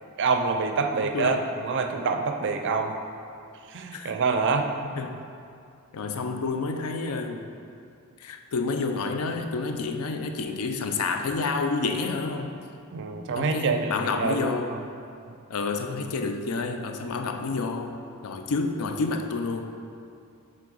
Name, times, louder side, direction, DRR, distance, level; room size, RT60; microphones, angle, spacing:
voice 1, 0.2-2.9 3.7-4.7 12.9-13.9 14.2-14.8 15.3-15.4, right 4 dB, 55° right, 5 dB, 0.4 m, -26 dB
voice 2, 5.9-7.5 8.2-12.6 13.4-14.8 15.5-19.7, left 4 dB, 80° left, 6 dB, 0.5 m, -29 dB
7.4 x 3.6 x 3.9 m, 2.5 s
head